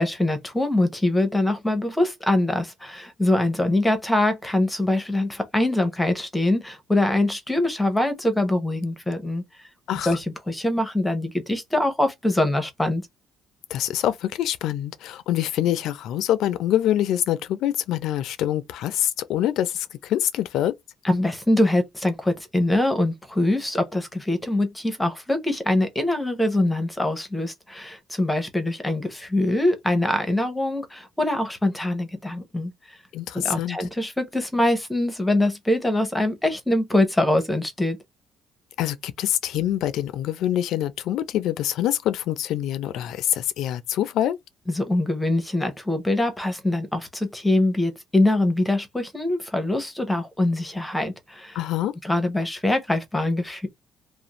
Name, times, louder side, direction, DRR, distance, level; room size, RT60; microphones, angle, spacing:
voice 1, 0.0-9.4 10.1-13.0 21.0-33.0 33.4-38.0 44.7-51.6 52.0-53.7, left 1 dB, 10° left, 0.8 m, -23 dB
voice 2, 9.9-10.2 13.7-20.8 33.1-33.8 38.8-44.4 51.5-51.9, left 12 dB, 75° left, 0.4 m, -25 dB
2.5 x 2.1 x 2.9 m
cardioid pair, 110°, 0 cm